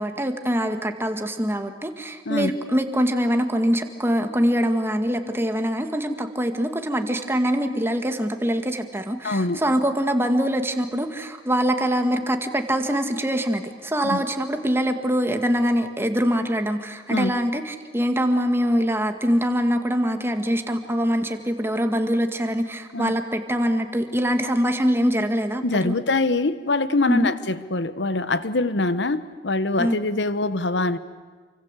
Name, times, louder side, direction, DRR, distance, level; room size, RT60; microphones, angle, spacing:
voice 1, 0.0-26.0 27.1-27.3 29.8-30.0, equal, 15° right, 2.1 m, -24 dB
voice 2, 9.2-9.6 14.0-14.2 17.1-17.3 22.9-23.1 25.6-31.0, left 2 dB, 90° left, 1.2 m, -24 dB
28.5 x 24.5 x 8.4 m
head